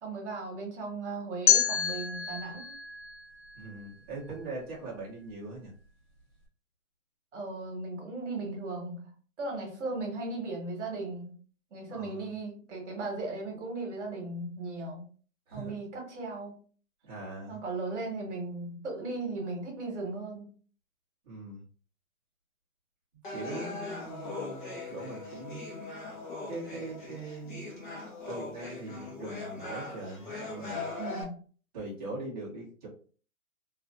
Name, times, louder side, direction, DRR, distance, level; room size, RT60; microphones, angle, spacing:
voice 1, 0.0-2.8 7.3-9.1 9.4-11.3 11.7-15.0 15.5-16.6 17.5-20.5 31.0-31.4, right 3 dB, 55° right, 0 dB, 1.1 m, -37 dB
sound 1, 1.5-4.4, left 9 dB, 80° left, 0.9 m, -29 dB
voice 2, 3.6-5.7 11.9-12.3 15.5-15.7 17.1-17.6 21.2-21.6 23.3-25.7 26.5-27.7 28.3-30.9 31.7-32.9, right 2 dB, 30° right, -8 dB, 0.7 m, -41 dB
sound 2, 23.2-31.2, left 3 dB, 35° left, 0.7 m, -40 dB
2.4 x 2.4 x 2.2 m, 0.41 s
hypercardioid pair, 165°, 41 cm